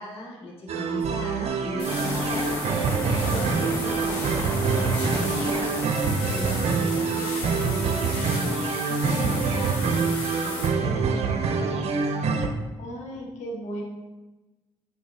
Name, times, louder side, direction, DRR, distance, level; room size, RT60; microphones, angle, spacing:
voice 1, 0.0-2.6 3.0-5.6 6.2-10.0 10.4-12.1, left 1 dB, 50° left, -3 dB, 2.0 m, -38 dB
sound 1, 0.7-12.5, right 5 dB, 60° right, 0.8 m, -25 dB
sound 2, 1.8-10.7, left 2 dB, 85° left, 1.8 m, -35 dB
sound 3, 1.9-5.9, left 1 dB, 20° left, 0.7 m, -34 dB
voice 2, 12.8-13.8, right 1 dB, 70° left, -1 dB, 1.5 m, -35 dB
8.3 x 4.7 x 2.7 m, 1.1 s
supercardioid pair, 60°, 12 cm